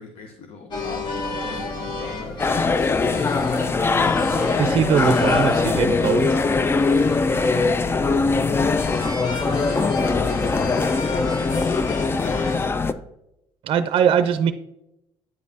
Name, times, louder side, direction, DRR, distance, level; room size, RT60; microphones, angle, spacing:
voice 1, 0.0-3.7 9.9-13.0, left 4 dB, 65° left, 4 dB, 0.9 m, -40 dB
sound 1, 0.7-12.7, left 2 dB, 45° left, 1.2 m, -31 dB
sound 2, 2.4-12.9, left 4 dB, 20° left, 0.3 m, -21 dB
voice 2, 4.6-6.4 13.6-14.5, right 8 dB, 55° right, 11 dB, 0.5 m, -21 dB
9.2 x 5.2 x 2.7 m, 0.85 s
cardioid pair, 95°, 11 cm